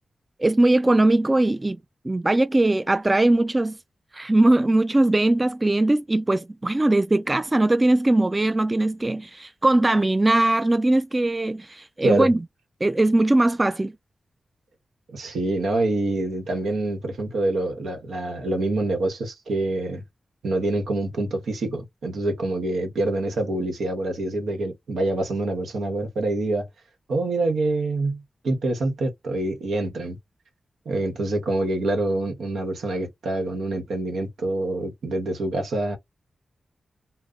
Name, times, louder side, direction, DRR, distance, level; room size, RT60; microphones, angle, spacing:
voice 1, 0.4-1.8 2.0-3.8 4.1-12.4 12.8-13.9, right 2 dB, 30° right, 0.3 m, -20 dB
voice 2, 15.1-20.0 20.4-26.7 27.1-30.2 30.8-36.0, right 2 dB, 90° right, 1.0 m, -26 dB
2.3 x 2.0 x 3.7 m
cardioid pair, 50°, 0 cm